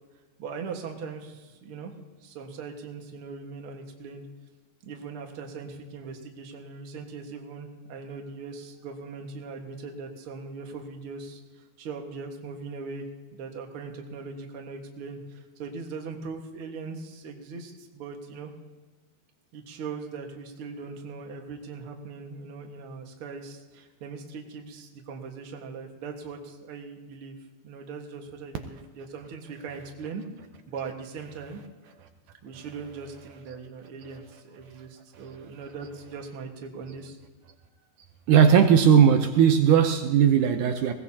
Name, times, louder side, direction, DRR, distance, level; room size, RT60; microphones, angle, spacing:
voice 1, 0.4-1.9 2.2-4.3 4.8-18.5 19.5-27.4 27.6-30.2 30.7-31.6 32.4-37.2, right 4 dB, 50° right, 1.9 m, -40 dB
voice 2, 38.3-40.9, right 8 dB, 75° right, 2.0 m, -18 dB
20.5 x 18.0 x 2.8 m
omnidirectional pair, 4.2 m